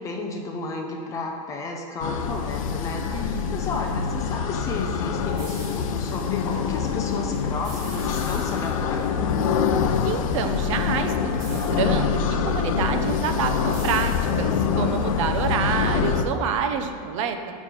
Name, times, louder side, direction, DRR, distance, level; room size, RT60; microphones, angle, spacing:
voice 1, 0.0-9.3, left 3 dB, 15° left, 2 dB, 0.5 m, -33 dB
sound 1, 2.0-16.3, left 6 dB, 55° left, 0.7 m, -25 dB
voice 2, 3.1-3.6 10.0-12.2 12.5-14.1 14.4-17.4, right 6 dB, 50° right, 7 dB, 0.8 m, -27 dB
sound 2, 5.4-6.1 7.6-9.1 11.4-12.2 13.7-14.8, right 3 dB, 15° right, 1.5 m, -44 dB
7.5 x 6.1 x 6.7 m, 2.1 s
supercardioid pair, 175°, 21 cm